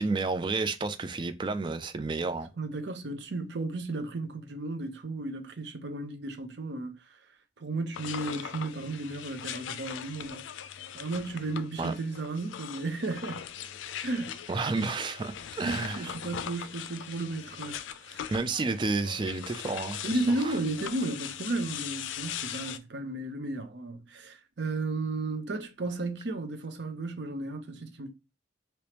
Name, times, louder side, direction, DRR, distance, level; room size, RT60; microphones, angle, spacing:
voice 1, 0.0-2.5 11.8-11.9 14.5-16.1 18.3-20.0 20.4-20.6, right 3 dB, 25° right, 0.3 m, -31 dB
voice 2, 2.6-7.0 7.6-10.4 10.9-13.5 14.0-14.4 15.6-18.3 20.0-28.1, right 2 dB, 70° right, 0.7 m, -34 dB
sound 1, 7.9-22.8, left 9 dB, 90° left, 0.4 m, -40 dB
3.3 x 3.0 x 2.9 m
head